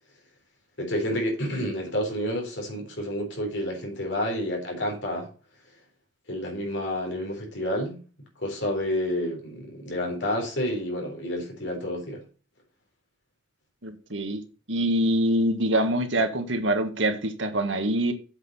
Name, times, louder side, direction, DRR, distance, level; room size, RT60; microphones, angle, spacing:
voice 1, 0.8-5.3 6.3-8.0 8.4-12.2, left 1 dB, 70° left, 4.0 m, -29 dB
voice 2, 13.8-14.4 14.7-18.1, right 1 dB, 80° right, 1.6 m, -25 dB
8.0 x 6.2 x 5.6 m
head